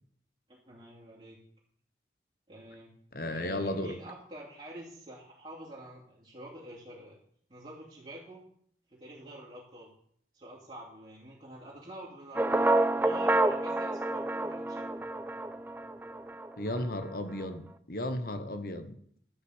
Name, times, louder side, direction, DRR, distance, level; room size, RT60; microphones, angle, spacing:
voice 1, 0.5-1.4 2.5-2.9 3.3-7.2 7.5-8.4 8.9-9.9 10.3-12.6 12.9-14.8, right 1 dB, 30° right, -8 dB, 2.9 m, -47 dB
voice 2, 3.1-3.9 16.6-19.0, left 1 dB, 55° left, 9 dB, 1.2 m, -34 dB
sound 1, 12.3-16.5, right 2 dB, 10° right, 0.5 m, -28 dB
11.5 x 5.9 x 8.0 m, 0.64 s
head